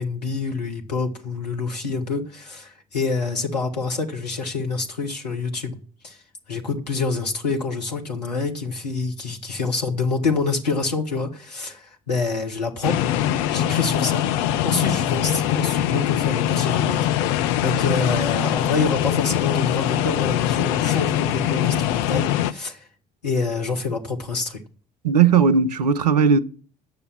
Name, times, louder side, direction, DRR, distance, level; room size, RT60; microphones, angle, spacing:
voice 1, 0.0-5.8 6.0-6.2 6.5-13.0 13.5-14.3 14.6-22.9 23.2-24.6, left 4 dB, 85° left, 1.1 m, -26 dB
sound 1, 12.8-22.5, left 11 dB, 60° left, 0.5 m, -22 dB
voice 2, 25.0-26.4, right 6 dB, 80° right, 0.5 m, -17 dB
9.1 x 6.8 x 7.3 m
figure-of-eight pair, 45°, 20 cm